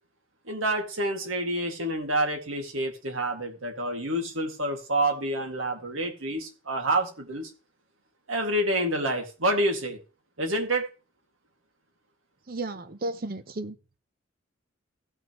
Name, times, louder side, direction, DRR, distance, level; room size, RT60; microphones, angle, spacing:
voice 1, 0.5-7.5 8.3-10.0 10.4-10.8, right 1 dB, 75° right, 2.1 m, -28 dB
voice 2, 12.5-13.8, right 2 dB, 45° right, 0.7 m, -33 dB
16.5 x 6.1 x 3.0 m
head